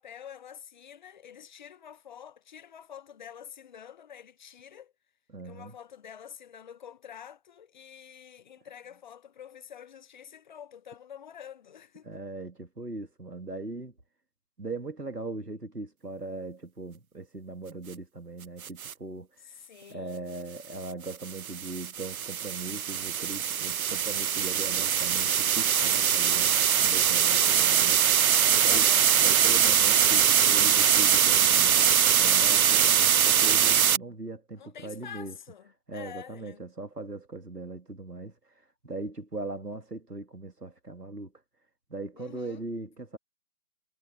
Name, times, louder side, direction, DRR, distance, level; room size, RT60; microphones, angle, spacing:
voice 1, 0.0-4.9 5.4-12.1 19.4-20.3 27.2-27.9 28.4-29.4 34.5-36.7 42.2-42.6, left 8 dB, 30° left, 1.5 m, -47 dB
voice 2, 5.3-5.7 12.0-13.9 14.6-19.3 19.9-28.0 28.6-28.9 29.2-35.3 35.9-38.3 38.8-41.3 41.9-43.2, right 2 dB, 90° right, 2.5 m, -39 dB
sound 1, 18.6-18.9 21.1-34.0, right 8 dB, 65° right, 0.5 m, -22 dB
figure-of-eight pair, 145°, 46 cm